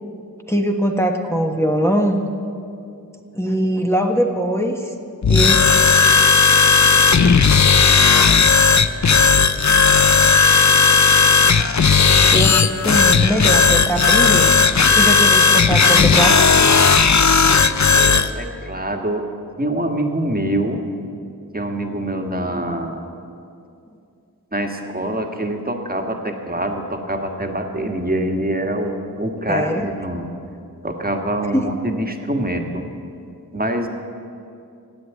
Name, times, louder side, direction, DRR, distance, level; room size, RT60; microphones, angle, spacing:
voice 1, 0.5-2.2 3.4-4.8 5.3-5.6 12.3-14.5 15.0-16.4 29.5-29.9 31.5-31.7, equal, 5° left, 1 dB, 1.3 m, -21 dB
sound 1, 5.2-18.3, left 5 dB, 50° left, 0.7 m, -14 dB
voice 2, 17.9-19.3 19.6-20.8 21.5-23.1 24.5-30.3 30.8-32.8 33.5-33.9, right 1 dB, 25° right, 3 dB, 1.6 m, -25 dB
16.5 x 9.3 x 9.2 m, 2.5 s
wide cardioid pair, 70°, 37 cm